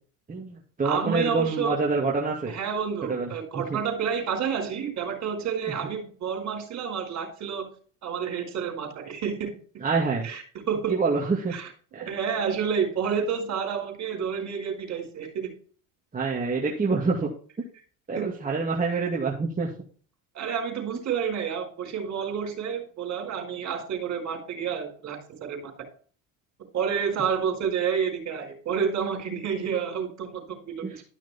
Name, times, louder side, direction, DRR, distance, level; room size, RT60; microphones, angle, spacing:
voice 1, 0.3-2.5 3.1-3.3 3.5-3.8 9.8-10.3 10.9-11.5 11.9-12.1 16.1-17.3 18.1-19.7 30.8-31.0, right 4 dB, 20° right, -3 dB, 2.3 m, -26 dB
voice 2, 0.8-1.8 2.5-7.7 8.0-9.8 10.2-11.0 11.5-11.7 12.0-15.5 18.1-18.3 18.9-19.0 20.3-25.7 26.7-31.0, right 7 dB, 45° right, 3 dB, 4.8 m, -29 dB
12.5 x 5.9 x 4.4 m, 0.42 s
hypercardioid pair, 85°, 39 cm